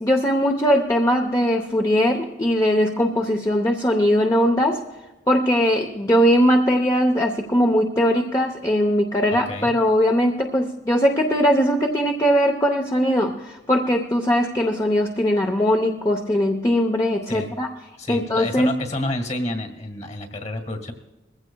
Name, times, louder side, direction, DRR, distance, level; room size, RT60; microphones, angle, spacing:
voice 1, 0.0-4.8 5.3-17.7 18.1-18.7, equal, 20° left, 2 dB, 0.8 m, -20 dB
voice 2, 9.3-9.7 17.3-17.5 18.0-20.9, left 1 dB, 40° left, 5 dB, 1.8 m, -29 dB
21.0 x 15.5 x 2.3 m, 1.1 s
head